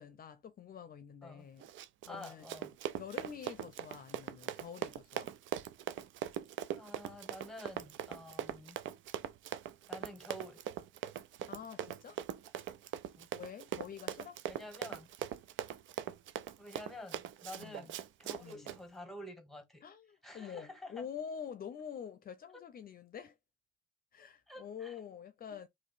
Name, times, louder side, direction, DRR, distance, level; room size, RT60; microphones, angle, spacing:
voice 1, 0.0-1.7 2.1-2.5 3.0-5.3 11.5-12.2 13.3-14.4 17.6-17.9 18.4-18.7 19.8-23.4 24.1-25.7, left 7 dB, 45° left, 0.5 m, -47 dB
Run, 1.6-18.8, right 10 dB, 75° right, 0.5 m, -41 dB
voice 2, 2.1-2.7 6.8-8.8 9.9-10.6 13.2-13.3 14.5-15.1 16.6-19.8 20.2-21.1 22.5-22.6 24.5-24.9, left 1 dB, ahead, 1.2 m, -49 dB
3.0 x 3.0 x 4.3 m
cardioid pair, 90°, 20 cm